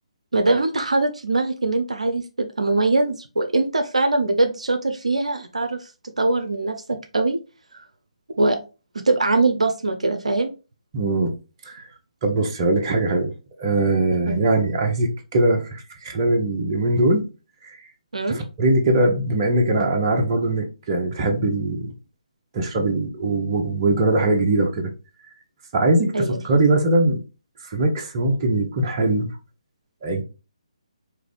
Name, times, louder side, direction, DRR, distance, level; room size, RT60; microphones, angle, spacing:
voice 1, 0.3-7.4 7.7-7.8 8.4-8.6 8.9-10.5 14.3-14.4 18.1-18.4 26.1-26.4, right 2 dB, 70° right, 0.6 m, -22 dB
voice 2, 10.9-11.3 11.7-11.9 12.2-13.3 13.6-17.3 17.6-17.8 18.3-21.9 22.5-24.9 25.7-27.2 27.6-29.3 30.0-30.2, right 2 dB, 30° right, 0.9 m, -21 dB
4.7 x 2.6 x 3.3 m
figure-of-eight pair, 145°, 4 cm